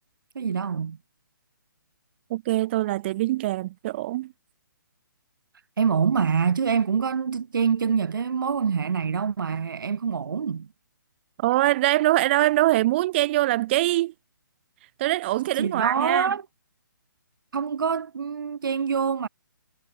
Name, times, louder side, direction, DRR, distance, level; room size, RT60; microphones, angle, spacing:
voice 1, 0.3-1.0 5.8-10.7 15.6-16.5 17.5-19.3, right 6 dB, 75° right, 0.6 m, -25 dB
voice 2, 2.3-4.3 11.4-14.1 15.0-16.3, right 16 dB, 30° right, 1.0 m, -23 dB
hypercardioid pair, 150°, 11 cm